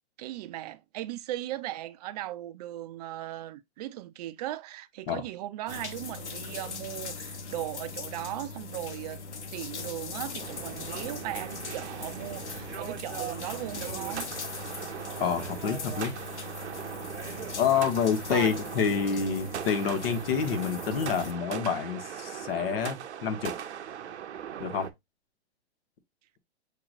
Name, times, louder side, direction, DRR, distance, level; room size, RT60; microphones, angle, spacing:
voice 1, 0.2-9.2 9.5-14.3 18.3-18.6, right 14 dB, 40° right, 0.4 m, -37 dB
sound 1, 5.7-21.3, left 4 dB, 85° left, 0.9 m, -40 dB
sound 2, 10.4-24.9, right 9 dB, 80° right, 0.6 m, -39 dB
voice 2, 15.2-16.2 17.6-23.5 24.6-24.9, left 7 dB, 60° left, 1.1 m, -28 dB
6.6 x 2.9 x 2.4 m
hypercardioid pair, 125°, 33 cm